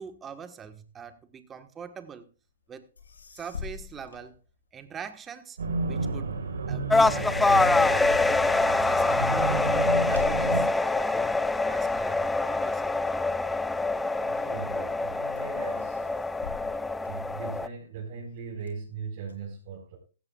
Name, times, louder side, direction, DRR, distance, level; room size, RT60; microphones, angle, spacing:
voice 1, 0.0-2.3 2.7-2.9 3.3-4.4 4.7-5.6 5.8-6.4 6.7-8.5 8.8-11.4 11.7-13.0, right 7 dB, 15° right, 9 dB, 1.4 m, -43 dB
sound 1, 2.7-2.8 3.0-5.1 5.5-14.2 14.7-15.1 15.4-17.8 18.3-19.3, left 7 dB, 85° left, 3.6 m, -46 dB
sound 2, 5.6-10.6, right 3 dB, 80° right, 4.4 m, -31 dB
sound 3, 6.9-17.7, left 3 dB, 5° left, 0.5 m, -25 dB
voice 2, 14.2-16.1 17.1-20.0, right 5 dB, 45° right, -3 dB, 4.9 m, -39 dB
15.5 x 15.5 x 2.4 m, 0.35 s
hypercardioid pair, 135°, 0 cm